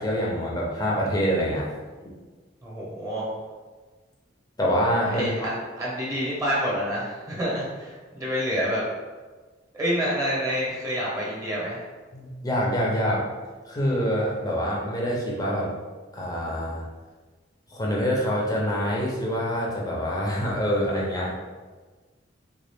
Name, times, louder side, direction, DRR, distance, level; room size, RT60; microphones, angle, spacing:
voice 1, 0.0-1.7 4.6-5.5 12.1-13.3 13.7-15.7 16.1-16.8 17.7-21.4, equal, 20° left, -4 dB, 0.7 m, -26 dB
voice 2, 2.6-3.3 5.1-8.8 9.7-11.8, equal, 15° right, -6 dB, 0.9 m, -28 dB
3.8 x 2.4 x 3.4 m, 1.3 s
head